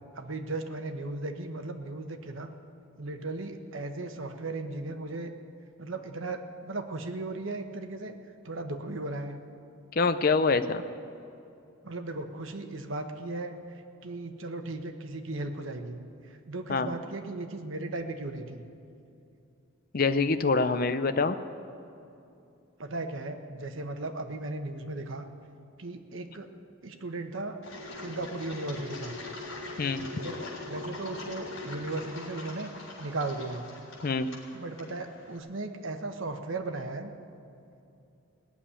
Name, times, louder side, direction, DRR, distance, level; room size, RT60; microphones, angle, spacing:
voice 1, 0.1-2.5 3.0-5.3 5.8-8.1 8.4-9.3 11.8-13.6 14.0-16.0 16.5-18.6 22.8-25.2 25.8-26.5 26.8-27.6 28.0-29.1 30.1-30.4 30.7-32.7 33.0-33.7 34.5-37.1, right 2 dB, 70° right, 6 dB, 1.1 m, -36 dB
voice 2, 10.0-10.8 16.7-16.9 19.9-21.4 29.8-30.1 34.0-34.3, left 4 dB, 45° left, 10 dB, 0.5 m, -25 dB
Engine, 27.6-35.4, left 2 dB, 70° left, 3.6 m, -42 dB
17.5 x 7.3 x 10.0 m, 2.7 s
head